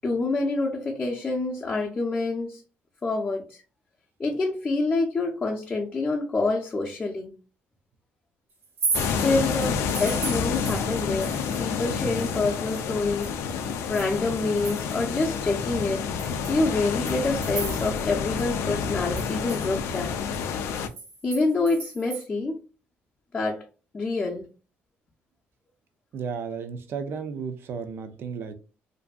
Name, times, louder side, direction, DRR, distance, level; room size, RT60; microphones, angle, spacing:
voice 1, 0.0-2.6 3.0-3.6 4.2-7.3 9.1-13.3 13.9-16.1 16.5-20.2 21.2-22.6 23.3-23.6 23.9-24.5, left 3 dB, 25° left, 0.5 m, -27 dB
sound 1, 8.6-11.7 12.0-15.2 15.6-15.7 16.2-18.1 18.4-18.5 18.8-22.2, right 4 dB, 85° right, 1.5 m, -36 dB
sound 2, 8.9-20.9, left 6 dB, 85° left, 0.3 m, -29 dB
voice 2, 26.1-28.5, right 6 dB, 60° right, 0.5 m, -33 dB
2.6 x 2.4 x 2.3 m
cardioid pair, 120°, 4 cm